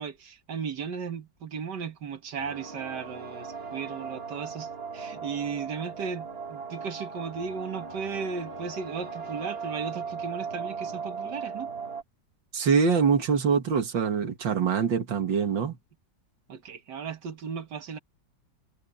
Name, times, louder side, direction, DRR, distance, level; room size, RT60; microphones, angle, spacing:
voice 1, 0.0-11.7 16.5-18.0, right 6 dB, 70° right, 2.0 m, -36 dB
sound 1, 2.4-12.0, right 5 dB, 35° right, 2.0 m, -38 dB
voice 2, 12.5-15.8, right 6 dB, 85° right, 2.6 m, -24 dB
omnidirectional pair, 2.0 m